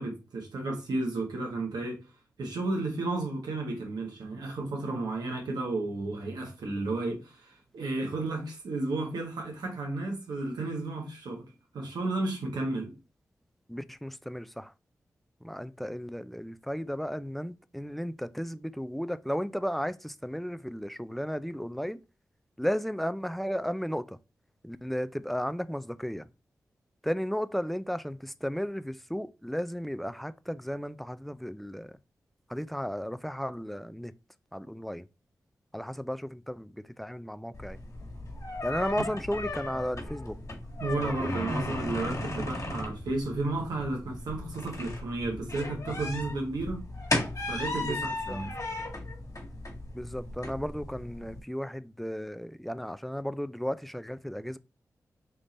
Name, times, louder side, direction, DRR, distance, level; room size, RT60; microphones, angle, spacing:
voice 1, 0.0-2.0 2.4-11.5 11.7-12.9 39.0-39.1 40.8-46.8 47.5-48.5, right 2 dB, 85° right, 1.2 m, -33 dB
voice 2, 13.7-14.7 15.4-22.0 22.6-24.2 24.6-26.3 27.0-32.0 32.5-34.1 34.5-35.1 35.7-37.8 38.6-40.4 41.0-41.3 47.8-48.0 48.3-48.4 49.9-54.6, equal, ahead, 0.4 m, -34 dB
sound 1, 37.5-51.4, left 2 dB, 55° left, 1.6 m, -36 dB
3.6 x 2.5 x 4.1 m
cardioid pair, 45°, 7 cm